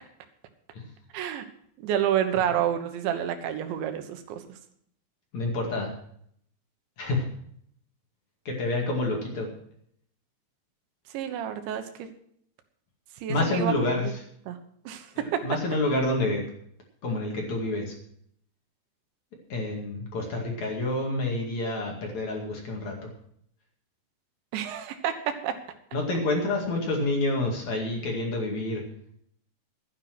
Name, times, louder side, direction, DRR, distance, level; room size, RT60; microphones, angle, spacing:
voice 1, 1.1-1.4 1.8-4.4 11.1-12.1 13.2-14.1 14.5-14.6 14.9-15.4 24.5-25.6, right 9 dB, 80° right, 8 dB, 3.5 m, -29 dB
voice 2, 5.3-5.9 7.0-7.3 8.5-9.5 13.3-14.1 15.4-16.4 17.0-17.9 19.5-23.1 25.9-28.8, left 2 dB, 45° left, 0 dB, 3.0 m, -28 dB
12.5 x 10.0 x 6.0 m, 0.66 s
omnidirectional pair, 5.2 m